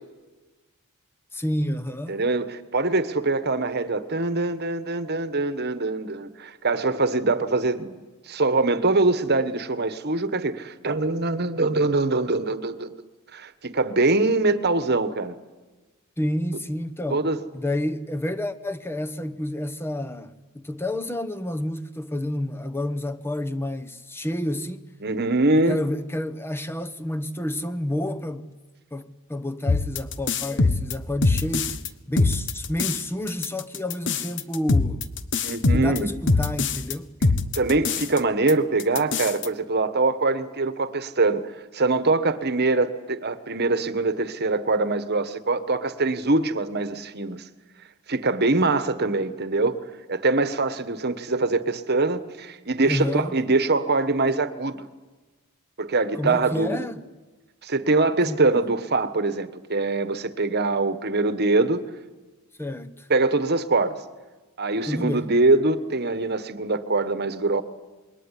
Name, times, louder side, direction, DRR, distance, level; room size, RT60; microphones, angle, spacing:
voice 1, 1.3-2.2 16.2-17.3 17.5-24.8 25.6-28.5 28.9-31.8 32.1-35.1 35.7-37.1 52.9-53.3 56.1-57.1 58.2-58.4 62.6-63.1 64.8-65.3, left 1 dB, 10° left, 1.1 m, -29 dB
voice 2, 2.1-8.0 8.3-13.0 13.3-15.3 17.1-17.4 25.0-25.8 35.4-36.1 37.6-47.4 48.1-49.8 50.1-54.8 55.8-56.9 57.6-61.8 63.1-64.0 64.6-67.6, right 3 dB, 45° right, 1.3 m, -23 dB
sound 1, 29.7-31.9 32.2-33.0 33.3-36.9 37.2-38.2 38.5-38.6 38.8-39.5, left 3 dB, 55° left, 1.2 m, -23 dB
27.0 x 22.0 x 10.0 m
head